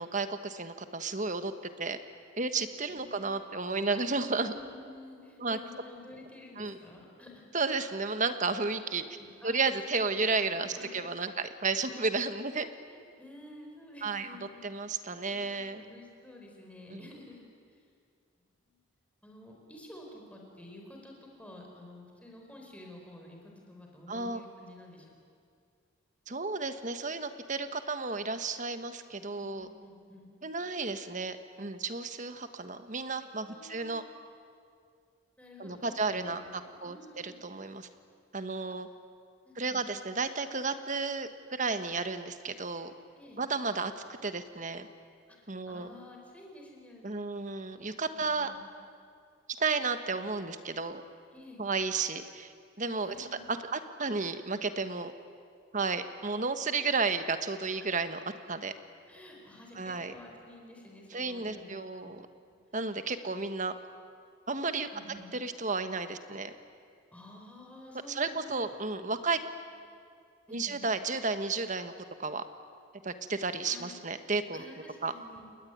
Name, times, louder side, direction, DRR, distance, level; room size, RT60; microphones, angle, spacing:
voice 1, 0.0-1.5 1.8-2.0 2.4-4.5 5.4-5.6 6.6-6.8 7.5-9.0 9.4-12.7 14.0-14.4 14.6-15.8 16.9-17.1 24.1-24.4 26.3-29.7 30.4-34.0 35.6-36.4 36.8-37.9 38.3-38.9 39.6-42.9 43.4-43.9 44.2-44.9 45.5-45.9 47.0-48.5 49.6-51.0 51.6-52.5 52.8-53.3 53.7-55.1 55.7-58.2 58.5-58.7 59.8-60.1 61.1-62.3 62.7-63.7 64.5-64.9 65.3-66.5 68.1-69.4 70.5-71.9 72.2-72.4 73.0-74.7 75.0-75.1, right 4 dB, 40° right, 9 dB, 1.4 m, -32 dB
voice 2, 2.9-3.5 4.5-7.5 9.2-9.7 9.9-11.0 11.9-12.1 12.9-14.9 15.3-17.8 18.6-18.8 19.2-25.1 29.3-30.3 33.4-34.1 35.4-37.4 39.4-39.8 43.2-43.4 45.3-47.4 47.7-47.8 48.2-48.6 51.3-51.6 53.0-53.5 57.8-58.2 59.0-62.2 62.5-62.6 64.9-65.3 67.1-68.8 69.1-69.2 70.5-70.8 73.6-74.0 74.5-75.4, left 1 dB, 5° left, 0 dB, 5.1 m, -51 dB
30.0 x 20.5 x 9.5 m, 2.2 s
head